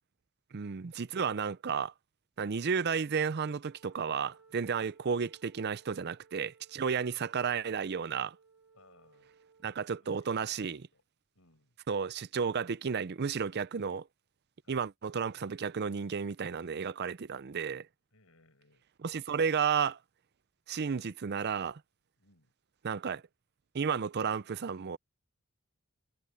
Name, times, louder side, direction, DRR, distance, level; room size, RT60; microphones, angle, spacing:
voice 1, 0.5-1.9 2.4-8.4 9.6-10.9 11.9-14.1 14.7-17.9 19.0-20.0 20.7-21.8 22.8-23.2 23.7-25.0, right 6 dB, 50° right, 0.5 m, -32 dB
Wind instrument woodwind instrument, 3.6-9.9, right 5 dB, 85° right, 2.1 m, -62 dB
voice 2, 6.9-7.3 8.7-9.3 10.0-11.0 11.3-11.8 13.4-13.5 14.6-14.9 18.1-18.8 22.2-22.5, left 2 dB, 75° left, 6.5 m, -65 dB
head